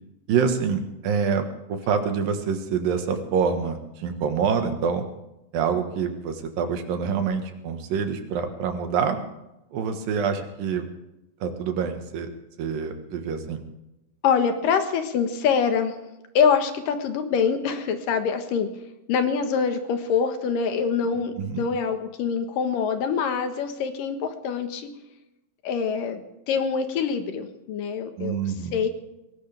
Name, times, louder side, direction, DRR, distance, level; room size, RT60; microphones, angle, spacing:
voice 1, 0.3-5.0 5.5-9.2 9.7-10.9 11.4-12.3 12.6-13.6 21.4-21.7 28.2-28.8, right 6 dB, 85° right, 6 dB, 3.3 m, -26 dB
voice 2, 14.2-16.0 16.3-18.7 19.1-24.9 25.6-28.4 28.7-28.9, left 6 dB, 80° left, 7 dB, 3.1 m, -25 dB
20.5 x 18.0 x 3.5 m, 0.94 s
omnidirectional pair, 3.9 m